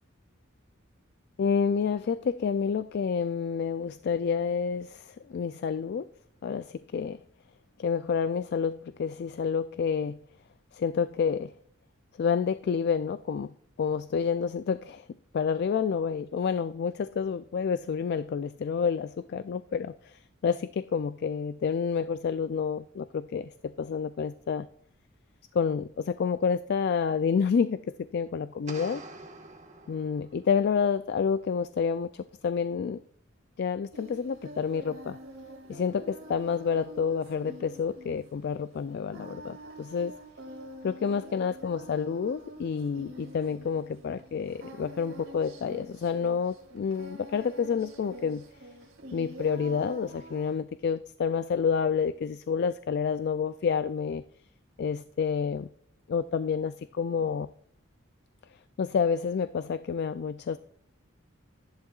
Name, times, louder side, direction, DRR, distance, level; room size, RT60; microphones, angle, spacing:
voice 1, 1.4-6.1 6.4-7.2 7.8-10.2 10.7-11.5 12.2-13.5 13.8-15.1 15.3-24.7 25.5-29.0 29.9-33.0 33.6-35.2 35.7-40.1 40.8-48.4 49.1-54.2 54.8-55.7 56.1-57.5 58.8-60.6, left 6 dB, 50° left, 13 dB, 0.3 m, -29 dB
sound 1, 28.7-30.6, right 3 dB, 35° right, 1.3 m, -46 dB
Singing, 33.9-50.6, right 1 dB, 70° right, 2.1 m, -47 dB
13.5 x 11.0 x 2.4 m, 0.64 s
head